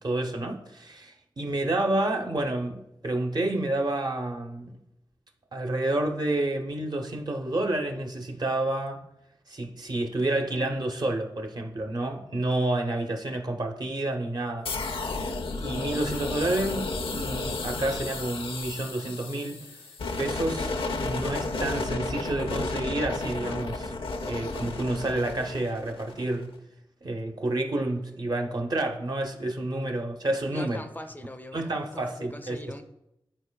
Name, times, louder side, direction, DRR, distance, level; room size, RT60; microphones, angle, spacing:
voice 1, 0.0-4.7 5.5-9.0 9.5-14.9 15.6-19.7 20.2-20.7 21.0-23.9 24.2-26.6 27.0-30.8 31.5-32.6, right 2 dB, 50° right, 0.8 m, -29 dB
sound 1, 14.7-26.4, left 3 dB, 85° left, 0.6 m, -32 dB
voice 2, 30.5-32.8, left 1 dB, 20° left, 0.5 m, -41 dB
10.5 x 4.6 x 2.3 m
wide cardioid pair, 95°, 9 cm